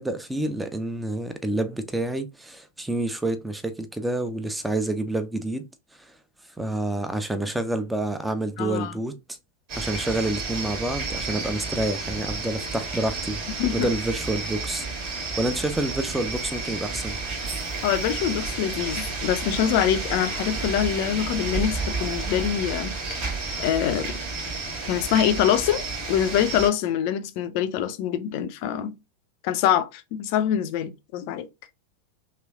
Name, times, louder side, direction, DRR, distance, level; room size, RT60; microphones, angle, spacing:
voice 1, 0.0-5.7 6.0-6.1 6.6-9.2 9.8-17.2, right 2 dB, 5° right, 0.5 m, -28 dB
voice 2, 8.6-8.9 13.6-13.9 17.8-23.3 23.6-24.1 24.9-25.8 26.1-28.9 29.4-31.5, left 10 dB, 45° left, 0.5 m, -24 dB
sound 1, 9.7-26.7, right 3 dB, 45° right, 1.4 m, -31 dB
3.1 x 3.0 x 2.3 m
figure-of-eight pair, 90°, 0 cm